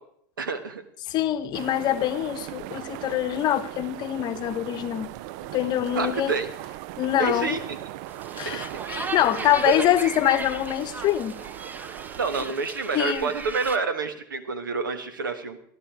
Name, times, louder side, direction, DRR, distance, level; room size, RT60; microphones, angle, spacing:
voice 1, 0.4-0.8 5.9-6.5 7.2-7.8 8.4-8.7 9.3-9.7 12.1-15.6, right 5 dB, 85° right, 1.5 m, -28 dB
voice 2, 1.1-5.1 5.5-6.3 7.0-7.6 8.4-11.4 12.9-13.3, left 12 dB, 40° left, 0.9 m, -24 dB
sound 1, 1.5-12.5, right 15 dB, 55° right, 0.5 m, -38 dB
sound 2, 8.1-13.8, right 3 dB, 15° right, 0.9 m, -37 dB
14.5 x 11.5 x 4.7 m
hypercardioid pair, 90°, 11 cm